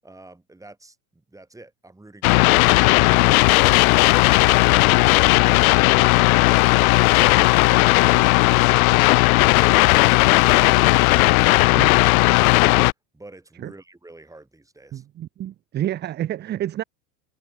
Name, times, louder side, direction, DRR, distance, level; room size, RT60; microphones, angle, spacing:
voice 1, 0.0-7.5 7.9-9.0 9.6-12.5 13.1-15.0, right 2 dB, 5° right, 7.6 m, -45 dB
sound 1, 2.2-12.9, left 23 dB, 70° left, 0.8 m, -16 dB
voice 2, 14.9-16.8, right 12 dB, 25° right, 0.6 m, -29 dB
hypercardioid pair, 110°, 44 cm